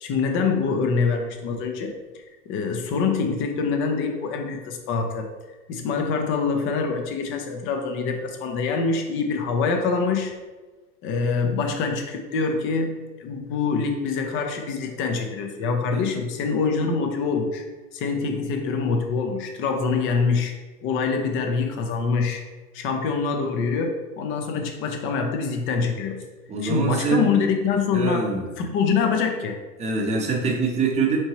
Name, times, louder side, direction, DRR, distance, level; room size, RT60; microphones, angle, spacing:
voice 1, 0.0-1.9 2.5-5.3 5.7-10.3 11.0-12.9 13.2-17.6 17.9-20.5 20.8-22.4 22.7-26.2 26.6-28.3 28.6-29.6, left 5 dB, 25° left, 4 dB, 0.5 m, -25 dB
voice 2, 26.5-27.3 27.9-28.5 29.8-31.2, right 4 dB, 15° right, -1 dB, 0.7 m, -24 dB
4.3 x 2.9 x 3.0 m, 1.3 s
hypercardioid pair, 105°, 47 cm